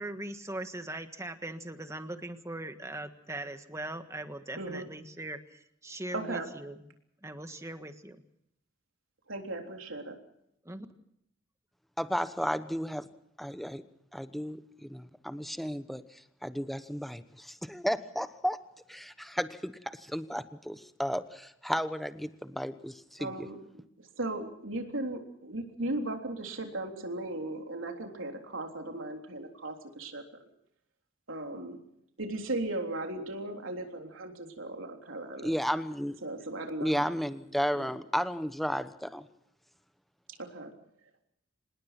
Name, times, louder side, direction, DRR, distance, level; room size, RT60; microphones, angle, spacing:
voice 1, 0.0-6.8 7.2-8.2 10.7-10.9, right 1 dB, 15° right, 8 dB, 1.6 m, -40 dB
voice 2, 4.6-4.9 6.1-6.5 9.3-10.2 23.2-30.2 31.3-31.8 32.2-35.5 36.2-37.1 37.7-37.9 40.3-40.7, right 2 dB, 80° right, 3 dB, 3.6 m, -37 dB
voice 3, 12.0-13.1 13.4-13.8 14.1-18.6 18.9-23.5 35.4-36.2 36.8-39.3, equal, ahead, 11 dB, 1.0 m, -33 dB
26.0 x 20.5 x 5.9 m, 0.75 s
head